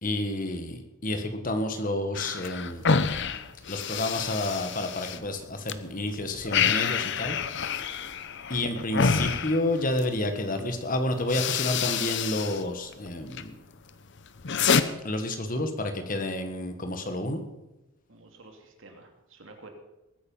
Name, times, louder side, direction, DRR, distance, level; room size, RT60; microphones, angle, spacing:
voice 1, 0.0-2.8 3.7-7.4 7.6-7.9 8.5-13.5 15.0-17.4, left 1 dB, 35° left, 6 dB, 1.6 m, -30 dB
sound 1, 2.1-5.8 6.1-10.1 10.8-10.9 11.2-12.6 12.9-13.5 13.9-14.8, left 6 dB, 55° left, 0.8 m, -28 dB
voice 2, 18.1-19.7, right 2 dB, 60° right, 4 dB, 2.6 m, -50 dB
20.5 x 9.5 x 5.6 m, 0.95 s
head